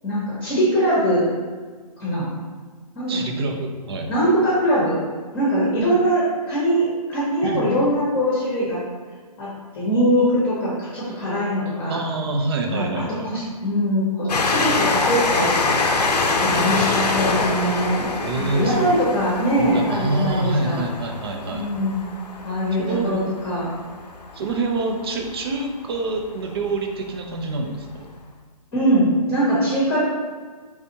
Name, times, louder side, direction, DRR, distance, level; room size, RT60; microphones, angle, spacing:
voice 1, 0.0-1.3 2.0-2.3 2.9-3.2 4.1-5.0 5.3-8.8 9.4-9.5 9.7-12.0 12.7-12.9 13.2-16.0 16.4-18.1 18.4-20.8 21.5-22.0 22.4-23.7 28.7-30.0, equal, 15° left, -7 dB, 0.9 m, -22 dB
voice 2, 3.1-4.1 7.4-7.7 11.9-13.5 18.2-19.1 19.6-21.7 22.8-23.2 24.3-28.1, right 2 dB, 40° right, 2 dB, 0.5 m, -26 dB
Train, 14.3-25.5 26.2-26.3 26.5-26.6, left 3 dB, 80° left, 0.6 m, -25 dB
4.1 x 3.5 x 2.8 m, 1.5 s
hypercardioid pair, 155°, 20 cm